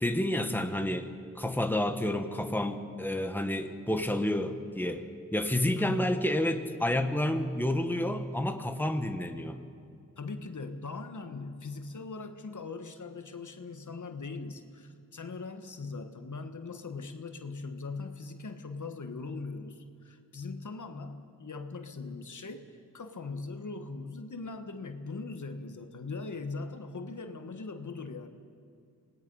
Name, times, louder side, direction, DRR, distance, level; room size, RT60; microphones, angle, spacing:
voice 1, 0.0-5.1 5.3-9.6, left 1 dB, 5° left, 6 dB, 1.5 m, -30 dB
voice 2, 5.8-6.1 10.2-28.3, left 3 dB, 65° left, 7 dB, 1.4 m, -40 dB
27.0 x 19.0 x 5.5 m, 2.4 s
cardioid pair, 50°, 32 cm